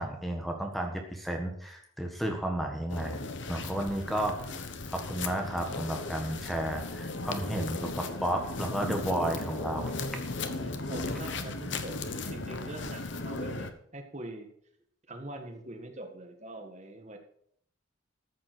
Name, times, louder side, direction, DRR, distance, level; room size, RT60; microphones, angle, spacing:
voice 1, 0.0-4.3 4.9-9.9, right 1 dB, ahead, 3 dB, 1.5 m, -32 dB
sound 1, 2.9-13.7, left 3 dB, 60° left, 1.1 m, -36 dB
voice 2, 10.5-14.5 15.1-17.2, right 1 dB, 35° right, 4 dB, 1.6 m, -43 dB
14.0 x 7.6 x 6.1 m, 0.66 s
head